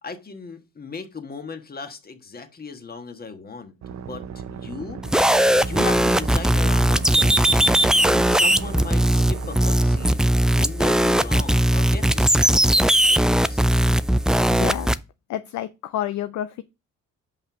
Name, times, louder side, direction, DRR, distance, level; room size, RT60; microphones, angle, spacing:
voice 1, 0.0-3.7 4.1-5.0 5.6-7.8 8.3-13.9, left 4 dB, 30° left, 1.4 m, -37 dB
sound 1, 3.8-10.1, right 8 dB, 65° right, 0.9 m, -36 dB
sound 2, 5.0-15.0, right 1 dB, ahead, 0.3 m, -19 dB
voice 2, 14.5-14.9 15.3-16.6, left 12 dB, 70° left, 0.5 m, -29 dB
5.5 x 5.3 x 5.9 m
cardioid pair, 90°, 30 cm